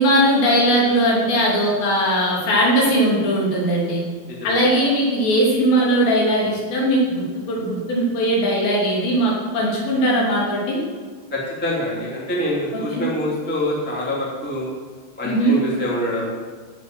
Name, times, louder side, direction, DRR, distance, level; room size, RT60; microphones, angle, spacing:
voice 1, 0.0-4.0 4.4-10.8 12.7-13.0 15.2-15.6, right 1 dB, 60° left, -4 dB, 5.0 m, -19 dB
voice 2, 4.3-4.6 11.3-14.7 15.2-16.3, left 1 dB, 5° left, -4 dB, 1.3 m, -25 dB
15.5 x 7.0 x 6.2 m, 1.5 s
omnidirectional pair, 5.8 m